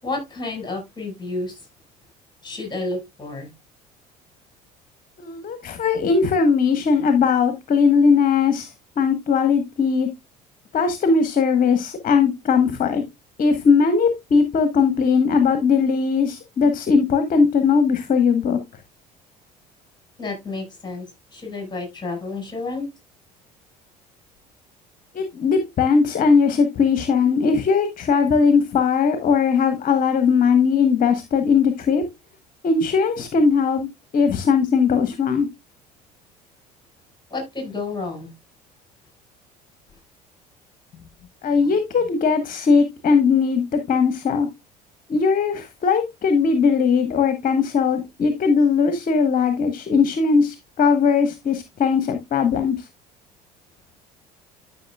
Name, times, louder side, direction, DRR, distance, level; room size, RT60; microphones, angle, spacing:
voice 1, 0.0-1.6 2.4-3.5 20.2-21.0 21.3-22.8 37.3-38.3, left 3 dB, 20° left, 4.9 m, -30 dB
voice 2, 5.2-10.1 10.7-13.0 13.4-18.6 25.1-32.0 32.6-33.9 34.1-35.5 41.4-44.5 45.1-52.9, left 5 dB, 40° left, 1.2 m, -19 dB
12.0 x 6.0 x 2.3 m
figure-of-eight pair, 60°, 21 cm